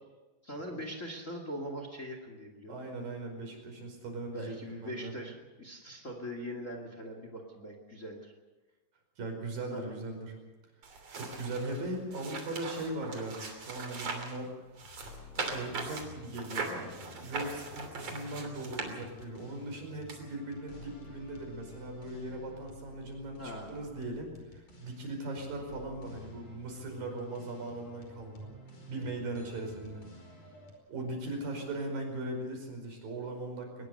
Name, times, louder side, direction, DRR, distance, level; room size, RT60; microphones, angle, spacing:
voice 1, 0.4-2.7 4.3-8.3 9.7-9.9 23.3-23.9, equal, 25° left, 4 dB, 2.3 m, -41 dB
voice 2, 2.7-5.1 9.2-10.4 11.1-14.5 15.2-28.5 28.9-30.1 30.9-33.9, right 2 dB, 75° right, 3 dB, 6.8 m, -39 dB
sound 1, 10.8-14.4 14.8-19.4 20.1-20.2, right 4 dB, 45° right, 3.9 m, -40 dB
sound 2, 14.7-30.7, left 3 dB, 45° left, 5.9 m, -52 dB
22.5 x 20.5 x 6.7 m, 1.2 s
omnidirectional pair, 4.1 m